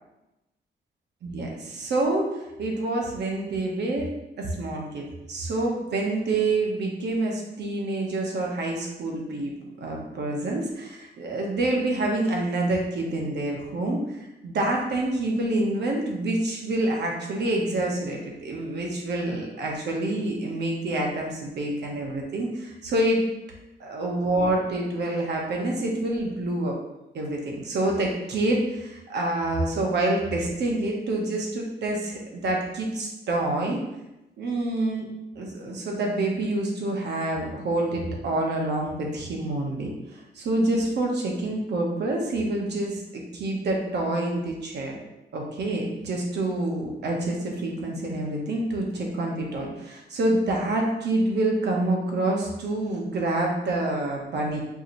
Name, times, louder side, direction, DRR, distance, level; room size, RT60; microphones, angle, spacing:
voice 1, 1.2-4.1 4.4-14.0 14.4-23.2 23.8-26.8 27.1-33.8 34.4-35.0 35.4-45.0 45.3-54.6, right 2 dB, 65° right, 0 dB, 0.8 m, -27 dB
4.6 x 2.8 x 2.6 m, 0.96 s
wide cardioid pair, 155°, 18 cm